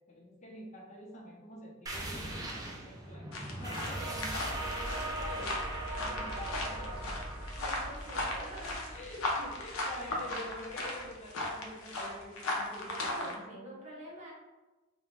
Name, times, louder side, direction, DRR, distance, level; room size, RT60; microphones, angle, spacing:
voice 1, 0.1-5.6 6.0-7.2 8.9-13.7, left 1 dB, 35° left, -2 dB, 0.5 m, -47 dB
sound 1, 1.9-11.1, right 1 dB, 20° right, 0.3 m, -40 dB
sound 2, 3.3-13.3, left 2 dB, 90° left, 0.5 m, -37 dB
voice 2, 7.6-9.0 12.8-14.3, right 1 dB, 35° right, -5 dB, 0.7 m, -46 dB
2.4 x 2.1 x 3.1 m, 1.1 s
head